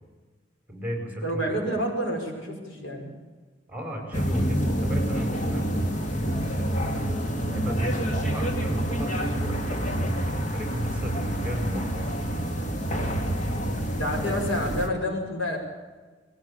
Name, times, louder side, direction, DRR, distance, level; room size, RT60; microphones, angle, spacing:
voice 1, 0.7-1.8 3.7-5.7 6.5-12.1, equal, 10° right, 2 dB, 5.3 m, -35 dB
voice 2, 1.2-3.1 13.9-15.6, equal, 85° left, 2 dB, 5.4 m, -29 dB
sound 1, 4.1-14.9, equal, 40° left, 2.3 m, -27 dB
20.5 x 16.0 x 8.8 m, 1.4 s
head